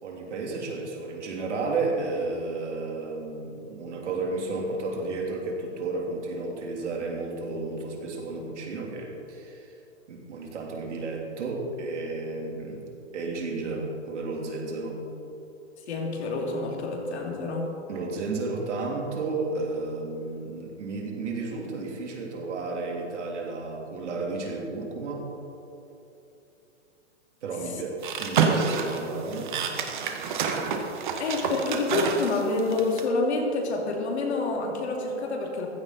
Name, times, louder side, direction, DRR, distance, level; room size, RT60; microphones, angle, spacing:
voice 1, 0.0-9.7 10.1-12.8 13.1-15.0 17.9-25.3 27.4-29.6, right 3 dB, 75° right, -1 dB, 3.5 m, -32 dB
voice 2, 15.9-17.7 31.2-35.7, left 3 dB, 65° left, 0 dB, 2.9 m, -28 dB
sound 1, 28.0-33.0, right 5 dB, 40° right, 1.3 m, -27 dB
15.5 x 14.0 x 4.2 m, 2.9 s
hypercardioid pair, 170°, 36 cm